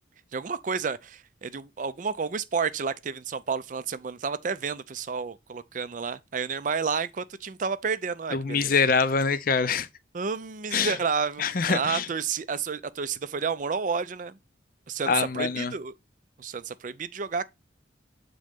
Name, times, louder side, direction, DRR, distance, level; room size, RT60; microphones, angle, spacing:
voice 1, 0.3-8.7 10.1-14.4 14.9-15.9 16.4-17.5, right 5 dB, 45° right, 0.4 m, -30 dB
voice 2, 8.3-9.9 10.7-11.0 11.4-12.1 15.1-15.7, left 5 dB, 50° left, 0.5 m, -24 dB
7.4 x 3.8 x 3.5 m
head